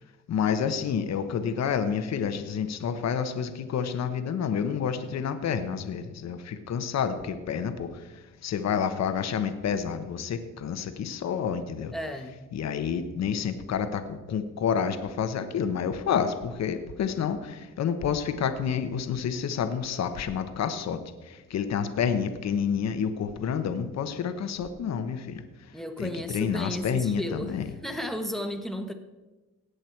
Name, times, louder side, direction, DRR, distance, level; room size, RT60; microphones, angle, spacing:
voice 1, 0.3-11.9 12.5-27.6, left 7 dB, 60° left, 9 dB, 1.1 m, -29 dB
voice 2, 11.9-12.4 25.7-27.6 27.8-28.9, left 1 dB, ahead, 6 dB, 1.5 m, -34 dB
17.5 x 8.1 x 4.6 m, 1.1 s
cardioid pair, 90°, 30 cm